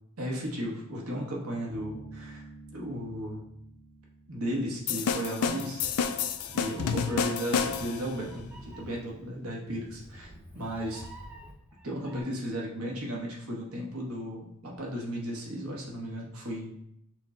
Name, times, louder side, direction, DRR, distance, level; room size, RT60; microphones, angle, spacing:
voice 1, 0.2-2.4 2.7-3.4 4.3-5.9 6.5-11.0 11.8-16.7, equal, 75° right, -2 dB, 1.1 m, -35 dB
Bass guitar, 1.7-5.2, right 2 dB, 60° right, 1.3 m, -49 dB
sound 1, 4.9-8.1, left 6 dB, 90° left, 0.4 m, -29 dB
Meow, 5.5-12.2, right 1 dB, 5° right, 0.6 m, -49 dB
6.1 x 2.1 x 3.7 m, 0.76 s
head